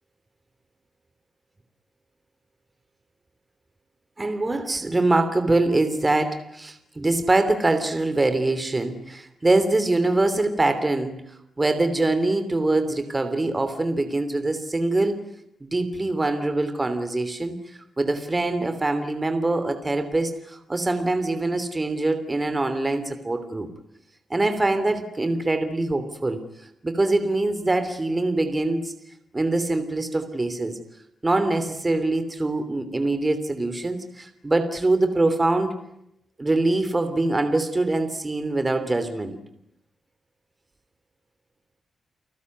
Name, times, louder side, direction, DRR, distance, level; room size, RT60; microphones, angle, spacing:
voice 1, 4.2-11.2 11.6-15.2 15.6-23.7 24.3-26.4 26.8-28.9 29.3-30.8 31.2-35.8 36.4-39.4, right 2 dB, 20° right, 9 dB, 3.1 m, -24 dB
30.0 x 19.5 x 9.6 m, 0.78 s
wide cardioid pair, 135°, 0 cm